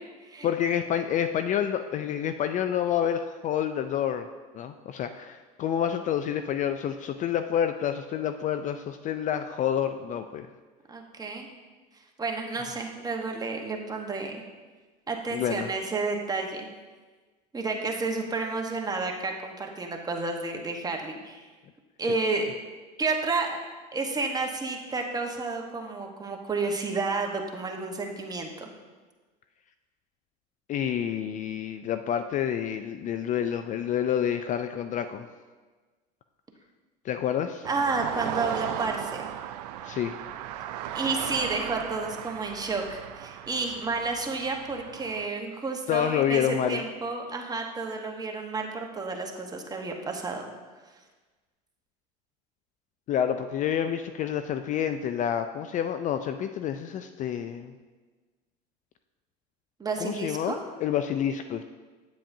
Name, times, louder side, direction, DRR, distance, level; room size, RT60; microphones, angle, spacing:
voice 1, 0.4-4.3 4.5-10.5 15.3-15.7 30.7-35.3 37.0-37.7 39.8-40.2 45.9-46.8 53.1-57.7 60.0-60.6 60.8-61.6, left 9 dB, 40° left, 9 dB, 0.4 m, -28 dB
voice 2, 10.9-11.5 12.2-14.4 15.1-16.7 17.5-21.4 22.0-22.5 23.0-23.6 23.9-28.7 37.6-39.3 40.9-50.5 59.8-60.6, right 3 dB, 20° right, 2 dB, 1.1 m, -31 dB
sound 1, 37.6-45.3, right 11 dB, 80° right, 0.4 m, -36 dB
8.5 x 7.6 x 2.7 m, 1.3 s
supercardioid pair, 90°, 20 cm